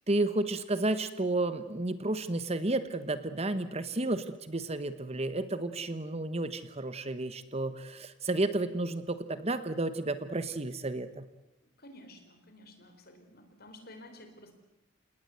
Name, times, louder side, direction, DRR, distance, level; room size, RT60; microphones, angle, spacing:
voice 1, 0.1-11.3, right 2 dB, 30° right, 12 dB, 1.1 m, -32 dB
voice 2, 11.8-14.6, left 1 dB, 50° left, 6 dB, 4.3 m, -52 dB
29.0 x 19.0 x 7.9 m, 0.94 s
head